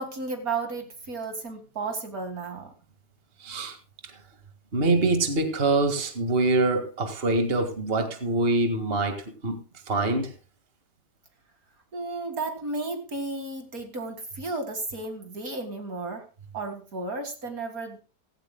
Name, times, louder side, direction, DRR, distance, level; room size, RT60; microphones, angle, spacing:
voice 1, 0.0-2.7 11.9-16.3 16.5-18.0, right 3 dB, 55° right, 2.3 m, -33 dB
voice 2, 3.4-3.8 4.0-4.2 4.7-10.3, right 2 dB, 35° right, 2.1 m, -25 dB
17.0 x 16.5 x 2.2 m
omnidirectional pair, 1.9 m